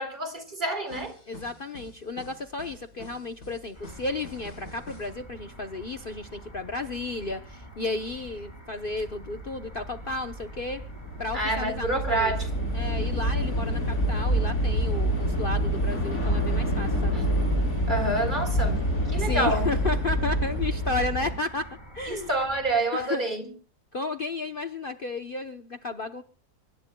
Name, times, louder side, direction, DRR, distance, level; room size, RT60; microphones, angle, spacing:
voice 1, 0.0-1.1 11.3-12.5 17.1-17.2 17.9-19.7 22.1-23.5, right 2 dB, 30° right, 6 dB, 4.1 m, -28 dB
sound 1, 0.9-5.3, left 2 dB, 75° left, 4.2 m, -48 dB
voice 2, 1.3-10.8 11.2-12.3 12.7-17.2 19.2-21.7 21.9-22.3 22.9-23.2 23.9-26.2, left 3 dB, 40° left, 6 dB, 1.0 m, -33 dB
sound 2, 3.7-22.8, right 1 dB, 15° left, 7.4 m, -47 dB
Train / Subway metro underground, 8.3-8.5 8.8-21.3, equal, 60° left, 4.5 m, -27 dB
25.5 x 21.0 x 2.3 m, 0.40 s
omnidirectional pair, 1.6 m